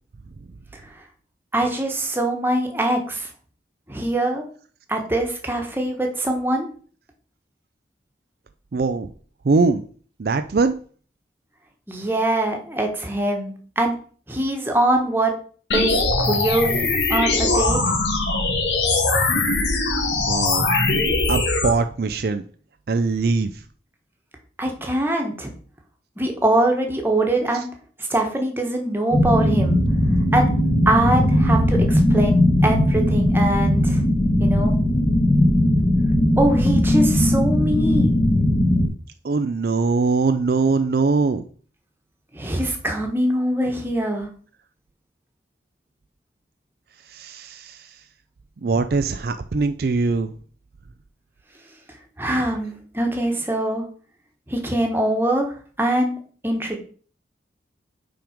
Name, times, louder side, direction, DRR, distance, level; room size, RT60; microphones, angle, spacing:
voice 1, 1.5-3.3 3.9-4.4 4.9-6.7 11.9-13.9 14.3-15.3 15.7-18.0 24.6-25.5 26.2-27.7 28.1-29.8 30.3-30.5 30.8-34.0 34.4-34.7 36.4-38.2 42.3-44.3 52.2-53.8 54.5-55.5 55.8-56.1 56.4-56.8, right 1 dB, 10° right, 2 dB, 1.3 m, -23 dB
voice 2, 8.7-9.1 9.4-9.8 10.2-10.8 20.3-20.7 21.3-22.4 22.9-23.6 27.5-27.6 39.2-41.4 47.1-48.0 48.6-50.3, right 4 dB, 55° right, 9 dB, 0.4 m, -22 dB
sound 1, 15.7-21.7, left 3 dB, 80° left, 1.5 m, -21 dB
sound 2, 29.1-38.9, left 1 dB, 30° left, 1.5 m, -18 dB
5.8 x 5.2 x 5.1 m, 0.43 s
head